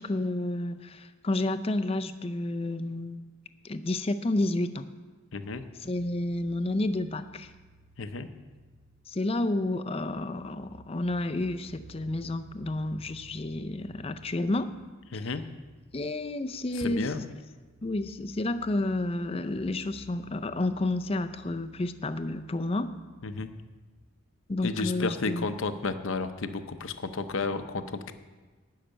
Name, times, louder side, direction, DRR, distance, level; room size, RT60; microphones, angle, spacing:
voice 1, 0.0-3.3 3.6-4.9 5.8-7.5 9.1-14.7 15.1-15.3 15.9-17.1 17.8-22.9 24.5-25.5, left 2 dB, 25° left, 10 dB, 0.5 m, -30 dB
voice 2, 5.3-5.6 8.0-8.3 15.1-15.4 16.7-17.2 23.2-23.5 24.6-28.1, left 3 dB, 65° left, 9 dB, 0.7 m, -32 dB
sound 1, 5.4-23.9, right 1 dB, 85° right, 2.7 m, -55 dB
12.0 x 5.8 x 8.8 m, 1.3 s
head